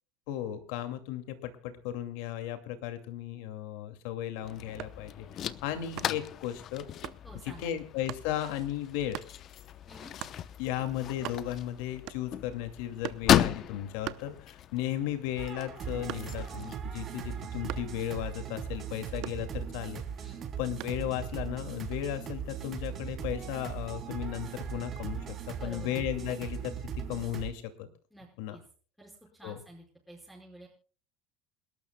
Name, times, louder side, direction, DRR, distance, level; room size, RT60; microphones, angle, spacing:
voice 1, 0.3-6.8 7.4-9.2 10.6-20.0 20.6-25.2 25.5-27.9 28.4-28.6 29.4-29.6, left 12 dB, 75° left, 8 dB, 2.4 m, -35 dB
sound 1, 4.4-16.8, left 10 dB, 40° left, 0.8 m, -34 dB
sound 2, 4.8-5.1 6.0-6.3 7.0-7.3 8.1-8.3 9.1-9.4 10.2-10.4 10.9-11.0 11.1-11.7 12.1-12.5 13.0-13.3 14.0-14.8 15.2-16.6 17.7-18.0 19.2-19.9 20.8-21.1, right 16 dB, 60° right, 0.8 m, -41 dB
voice 2, 7.2-7.8 9.9-10.1 20.2-20.5 25.5-26.2 28.1-28.6 29.0-30.7, right 1 dB, ahead, -1 dB, 5.3 m, -50 dB
sound 3, 15.4-27.5, right 8 dB, 35° right, 3.2 m, -39 dB
28.5 x 12.5 x 2.3 m, 0.41 s
supercardioid pair, 130°, 0 cm